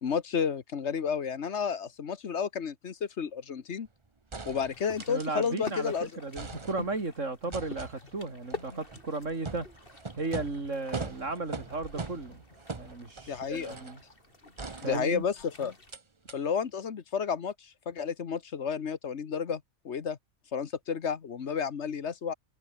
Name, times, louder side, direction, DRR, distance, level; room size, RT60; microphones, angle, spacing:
voice 1, 0.0-3.9 4.5-6.1 13.3-13.8 14.8-15.7 16.3-20.2 20.5-22.3, left 6 dB, 65° left, 1.5 m, -31 dB
sound 1, 3.8-3.9 4.3-5.9 6.1-7.1 7.5-14.0 14.6-15.4 15.9-16.0 16.3-16.4, right 3 dB, 25° right, 1.0 m, -42 dB
sound 2, 4.7-15.9, left 2 dB, 45° left, 3.5 m, -48 dB
voice 2, 5.1-9.7 10.2-12.4 12.8-14.0 14.8-15.3, right 3 dB, 85° right, 4.0 m, -35 dB
omnidirectional pair, 1.3 m